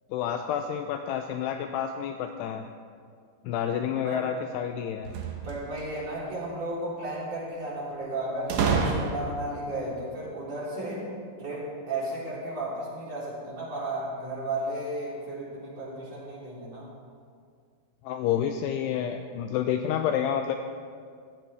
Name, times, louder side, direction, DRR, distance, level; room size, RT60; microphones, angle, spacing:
voice 1, 0.1-2.7 3.4-5.1 18.0-20.6, left 9 dB, 80° left, 6 dB, 2.5 m, -29 dB
voice 2, 3.9-4.3 5.4-11.1 11.4-16.9, right 1 dB, 40° right, -7 dB, 4.4 m, -34 dB
sound 1, 5.0-6.0 8.5-9.5, right 5 dB, 85° right, 1.5 m, -28 dB
15.0 x 15.0 x 3.5 m, 2.2 s
omnidirectional pair, 5.0 m